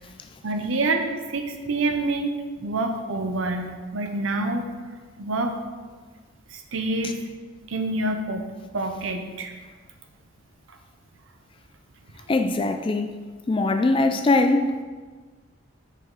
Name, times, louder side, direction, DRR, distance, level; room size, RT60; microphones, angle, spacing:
voice 1, 0.4-2.3 2.6-4.7 5.2-5.5 6.5-7.2 7.7-9.5, right 2 dB, 70° right, 5 dB, 0.7 m, -27 dB
voice 2, 12.3-13.1 13.5-14.8, left 2 dB, 25° left, 7 dB, 0.3 m, -21 dB
6.2 x 5.5 x 3.8 m, 1.4 s
head